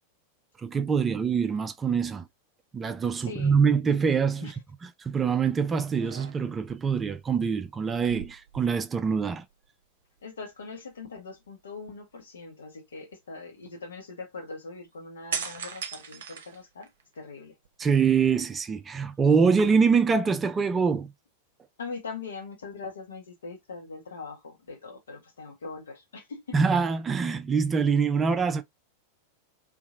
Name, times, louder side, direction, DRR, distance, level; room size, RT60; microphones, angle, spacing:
voice 1, 0.6-2.2 2.7-4.5 5.0-9.4 17.8-21.1 26.5-28.6, right 6 dB, 20° right, 0.4 m, -24 dB
voice 2, 3.2-3.6 4.4-4.5 10.2-16.9 17.1-17.5 21.8-26.6, left 4 dB, 65° left, 1.0 m, -41 dB
sound 1, 5.2-5.5 5.9-6.7 7.9-9.2 9.5-9.7 15.3-17.1 17.6-18.5, right 6 dB, 60° right, 0.7 m, -39 dB
2.8 x 2.5 x 2.5 m
figure-of-eight pair, 90°, 0 cm